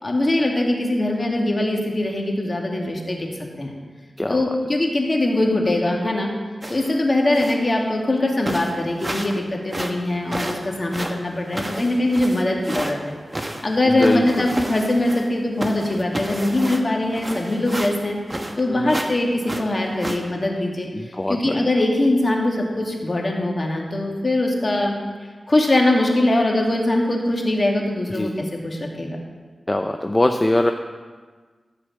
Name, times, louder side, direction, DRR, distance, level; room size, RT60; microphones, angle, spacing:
voice 1, 0.0-3.3 3.6-3.7 4.3-6.3 6.7-18.2 18.6-25.0 25.2-29.2, left 1 dB, 40° left, 0 dB, 2.1 m, -22 dB
sound 1, 6.6-7.0 7.3-7.7 8.1-8.2 8.4-9.4 9.7-12.9 13.3-15.3 15.6-18.6 18.9-19.1 19.4-20.2, right 1 dB, 20° right, 1.1 m, -31 dB
voice 2, 14.0-14.5 18.7-18.9 20.9-21.7 28.2-28.3 29.7-30.7, left 1 dB, 20° left, 5 dB, 0.5 m, -22 dB
14.5 x 5.0 x 7.4 m, 1.5 s
wide cardioid pair, 70°, 0 cm